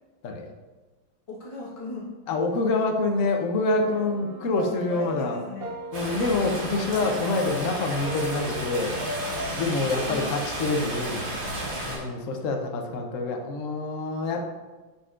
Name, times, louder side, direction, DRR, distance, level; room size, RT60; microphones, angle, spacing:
voice 1, 1.3-2.1 4.9-5.8 9.8-10.3, left 2 dB, 20° left, -5 dB, 1.0 m, -37 dB
voice 2, 2.3-5.4 5.9-9.0 9.6-11.3 11.9-14.4, left 3 dB, 65° left, 3 dB, 0.8 m, -26 dB
sound 1, 3.7-12.0, equal, 55° right, 0.7 m, -39 dB
sound 2, 5.9-12.0, right 1 dB, 85° right, 2.6 m, -33 dB
9.9 x 4.0 x 2.5 m, 1.2 s
omnidirectional pair, 2.1 m